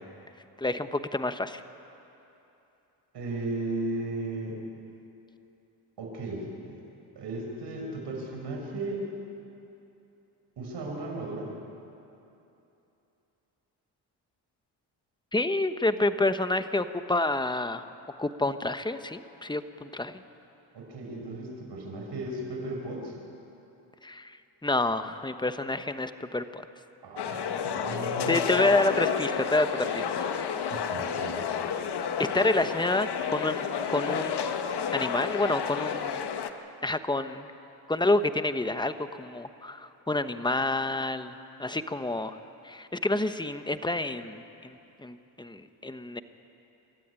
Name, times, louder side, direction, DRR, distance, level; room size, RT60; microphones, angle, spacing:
voice 1, 0.6-1.6 15.3-17.8 18.2-20.1 24.0-24.4 24.6-26.6 28.3-29.7 29.9-30.3 32.2-34.4 34.9-36.2 36.8-37.5 37.9-41.3 41.6-42.4 42.6-46.2, left 2 dB, 10° left, 10 dB, 1.1 m, -28 dB
voice 2, 3.1-4.6 6.0-6.8 7.2-9.1 10.6-11.5 20.7-23.2 27.0-28.4 30.7-31.5, right 2 dB, 70° right, 0 dB, 5.5 m, -35 dB
sound 1, 27.2-36.5, left 7 dB, 65° left, 1.4 m, -31 dB
27.0 x 13.5 x 9.7 m, 2.9 s
cardioid pair, 70°, 42 cm